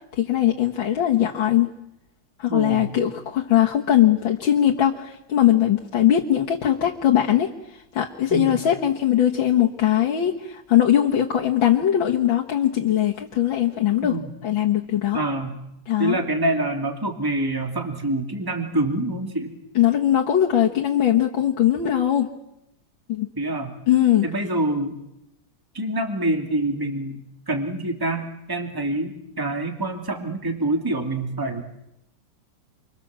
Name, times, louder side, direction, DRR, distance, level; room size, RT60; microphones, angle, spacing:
voice 1, 0.2-1.7 2.4-14.2 14.4-15.2 15.9-16.2 19.8-22.3 23.1-23.3 23.9-24.3, left 11 dB, 80° left, -1 dB, 2.3 m, -20 dB
voice 2, 2.5-2.9 8.3-8.6 14.0-14.3 15.1-15.6 16.0-19.5 23.4-23.8 24.2-25.0 25.7-27.2 27.5-31.6, right 2 dB, 10° right, 3 dB, 2.7 m, -26 dB
29.5 x 23.5 x 7.5 m, 0.85 s
omnidirectional pair, 2.1 m